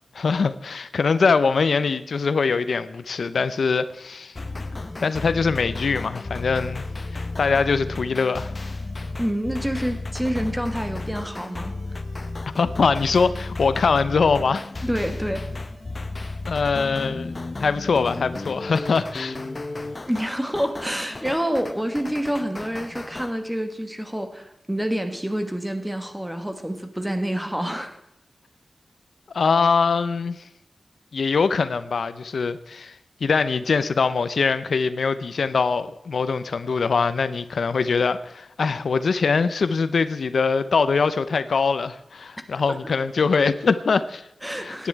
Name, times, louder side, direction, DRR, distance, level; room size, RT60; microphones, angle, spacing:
voice 1, 0.1-4.3 5.0-6.8 7.1-8.5 12.6-14.6 16.5-19.4 29.3-30.4 31.1-44.3 44.6-44.9, left 5 dB, 85° left, 0.6 m, -23 dB
sound 1, 4.3-23.3, left 2 dB, 35° left, 0.9 m, -33 dB
voice 2, 9.2-11.7 14.8-15.4 20.1-28.0 42.4-42.9 44.4-44.9, equal, 5° right, 1.5 m, -28 dB
17.5 x 10.0 x 4.7 m
wide cardioid pair, 125°, 0 cm